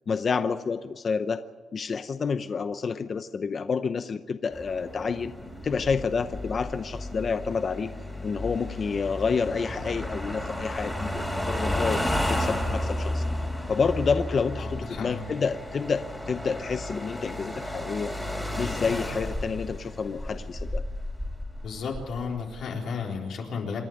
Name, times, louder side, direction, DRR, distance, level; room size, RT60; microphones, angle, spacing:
voice 1, 0.1-1.4 1.7-5.3 5.6-7.9 8.2-13.2 13.7-18.1 18.6-20.8, left 5 dB, 35° left, 10 dB, 0.7 m, -29 dB
sound 1, 4.5-22.7, left 1 dB, 5° left, 3.3 m, -33 dB
voice 2, 14.6-15.2 21.6-23.9, left 5 dB, 65° left, 0 dB, 3.9 m, -33 dB
27.5 x 11.5 x 9.5 m, 1.4 s
cardioid pair, 145°, 0 cm